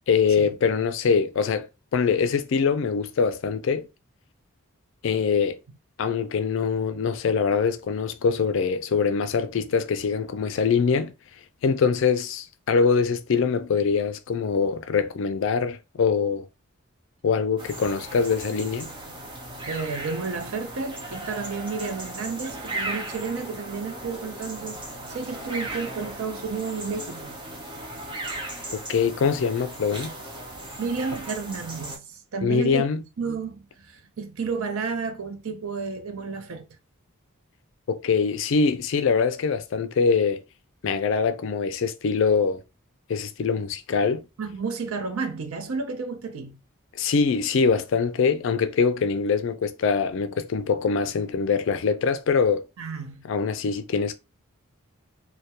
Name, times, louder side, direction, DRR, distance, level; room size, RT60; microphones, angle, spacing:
voice 1, 0.1-1.7 1.9-3.9 5.0-5.6 6.0-11.1 11.6-16.5 17.2-18.9 28.7-30.1 32.4-33.0 37.9-40.4 40.8-42.6 43.1-44.3 47.0-52.6 53.2-54.2, left 5 dB, 55° left, 0.3 m, -23 dB
sound 1, 17.6-32.0, right 1 dB, 20° right, 0.5 m, -37 dB
voice 2, 19.7-24.8 25.1-27.3 30.5-32.8 33.2-36.6 44.4-46.6 52.8-53.3, right 4 dB, 70° right, 0.5 m, -31 dB
2.2 x 2.1 x 2.8 m
head